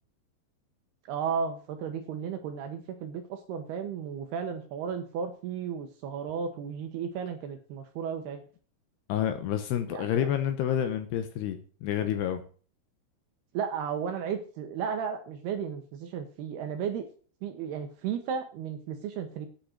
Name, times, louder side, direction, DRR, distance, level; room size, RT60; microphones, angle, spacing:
voice 1, 1.1-8.4 9.9-10.3 13.5-17.1 17.4-19.5, right 7 dB, 75° right, 6 dB, 2.6 m, -34 dB
voice 2, 9.1-12.4, left 10 dB, 75° left, 8 dB, 2.7 m, -29 dB
9.0 x 8.6 x 6.4 m, 0.41 s
omnidirectional pair, 5.6 m